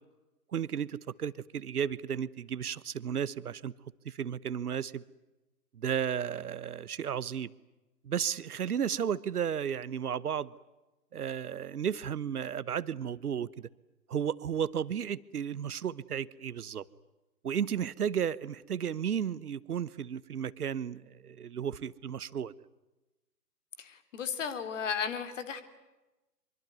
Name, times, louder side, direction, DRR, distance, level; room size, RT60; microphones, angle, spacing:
voice 1, 0.5-3.7 4.0-5.0 5.8-7.5 8.0-10.5 11.1-13.7 14.1-16.8 17.4-22.5, right 8 dB, 65° right, 18 dB, 1.1 m, -33 dB
voice 2, 23.8-25.6, left 6 dB, 50° left, 10 dB, 3.2 m, -35 dB
25.0 x 23.5 x 9.4 m, 1.0 s
figure-of-eight pair, 135°, 48 cm